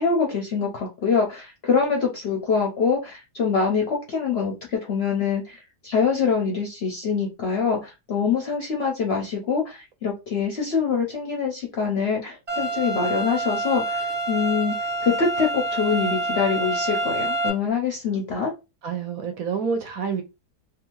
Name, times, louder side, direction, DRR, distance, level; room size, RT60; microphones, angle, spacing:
voice 1, 0.0-14.7 15.0-18.5, left 5 dB, 60° left, 0.7 m, -24 dB
sound 1, 12.5-17.5, right 2 dB, 30° right, 0.9 m, -27 dB
voice 2, 18.8-20.2, right 6 dB, 70° right, 0.9 m, -28 dB
2.6 x 2.4 x 3.0 m
omnidirectional pair, 1.7 m